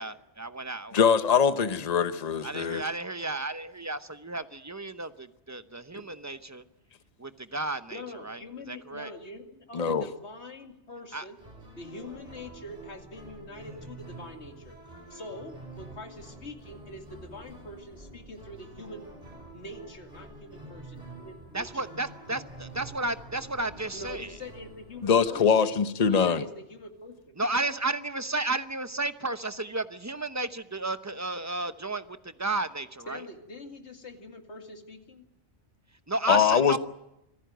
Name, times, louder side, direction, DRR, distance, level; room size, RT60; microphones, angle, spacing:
voice 1, 0.0-1.0 2.4-6.6 7.2-8.4 8.7-9.1 11.1-11.2 21.5-24.3 27.4-33.2 36.1-36.8, right 2 dB, 15° right, 11 dB, 0.8 m, -33 dB
voice 2, 0.9-2.8 9.7-10.0 25.0-26.4 36.3-36.8, left 7 dB, 35° left, 11 dB, 1.0 m, -23 dB
voice 3, 7.9-11.4 11.8-14.8 15.1-19.1 19.5-21.9 23.9-25.7 26.1-27.4 33.1-35.3, left 1 dB, 65° left, 5 dB, 2.5 m, -44 dB
sound 1, 11.4-25.3, right 2 dB, 35° right, 4.8 m, -47 dB
26.0 x 15.5 x 9.2 m, 0.89 s
omnidirectional pair, 1.2 m